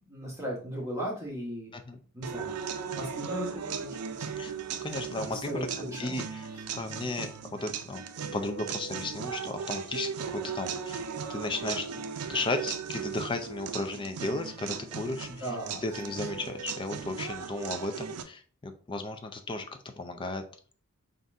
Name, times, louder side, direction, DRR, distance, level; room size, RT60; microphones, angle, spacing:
voice 1, 0.1-1.7 2.1-2.5 2.9-4.3 5.3-6.1 15.4-15.8, equal, 15° right, -3 dB, 1.1 m, -37 dB
sound 1, 2.2-18.2, right 7 dB, 90° right, 0.4 m, -37 dB
voice 2, 4.8-5.7 6.0-6.5 6.7-8.0 8.3-12.0 12.3-19.7 20.0-20.4, left 2 dB, 20° left, 7 dB, 0.4 m, -35 dB
4.0 x 2.6 x 3.4 m, 0.42 s
head